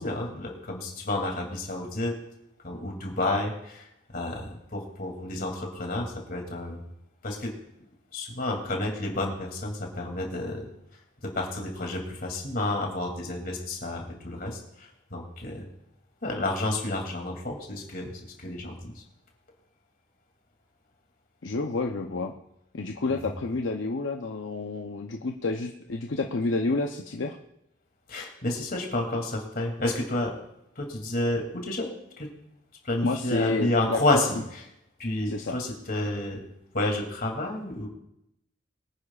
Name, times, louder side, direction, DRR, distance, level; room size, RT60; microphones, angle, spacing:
voice 1, 0.0-2.1 2.6-6.8 7.2-7.5 8.1-10.7 11.3-15.7 16.2-18.1 18.4-19.0 23.1-23.4 28.1-30.3 30.8-32.3 32.8-34.4 35.0-36.4 36.7-37.9, left 2 dB, 50° left, 1 dB, 2.6 m, -30 dB
voice 2, 21.4-22.3 22.7-27.4 33.0-34.0 35.3-35.6, left 3 dB, 75° left, 2 dB, 0.7 m, -29 dB
23.0 x 9.8 x 2.4 m, 0.82 s
head